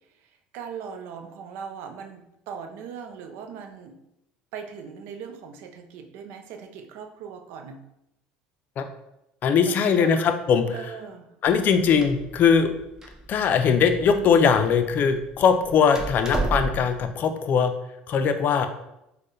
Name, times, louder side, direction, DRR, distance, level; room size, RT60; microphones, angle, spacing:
voice 1, 0.5-4.0 4.5-7.8 9.6-10.1 10.7-11.3, right 7 dB, 70° right, 6 dB, 0.5 m, -39 dB
voice 2, 9.4-10.7 11.4-12.7 13.3-17.7 18.1-18.7, left 6 dB, 50° left, 7 dB, 0.4 m, -20 dB
Door, 11.4-17.0, right 2 dB, 15° right, 0.7 m, -34 dB
4.3 x 2.2 x 3.1 m, 0.85 s
supercardioid pair, 85°, 4 cm